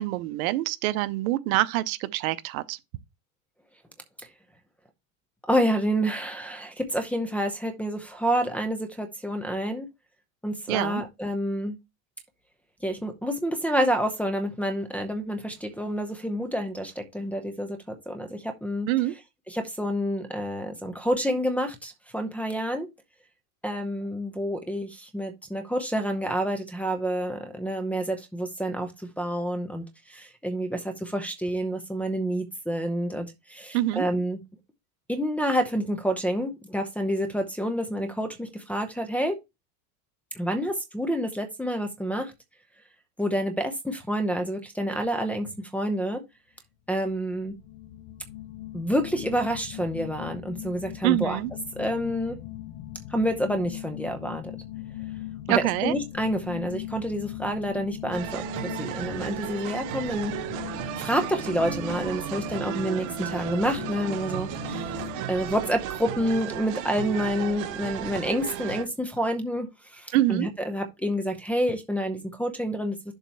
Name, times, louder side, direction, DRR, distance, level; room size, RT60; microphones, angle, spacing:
voice 1, 0.0-2.8 10.7-11.0 18.9-19.1 33.7-34.1 51.0-51.5 55.5-55.9 70.1-70.5, right 16 dB, 85° right, 0.7 m, -25 dB
voice 2, 5.5-9.9 10.4-11.8 12.8-18.9 19.5-22.9 23.6-28.9 29.2-34.4 35.1-39.4 40.3-42.3 43.2-46.2 46.9-47.5 48.7-51.4 51.7-52.4 53.1-54.5 55.5-60.3 61.0-64.9 65.3-73.0, equal, 5° left, 0.7 m, -28 dB
sound 1, 47.0-65.2, left 14 dB, 70° left, 0.9 m, -40 dB
sound 2, 58.1-68.9, right 12 dB, 50° right, 0.8 m, -34 dB
7.2 x 3.1 x 5.5 m
supercardioid pair, 145°, 41 cm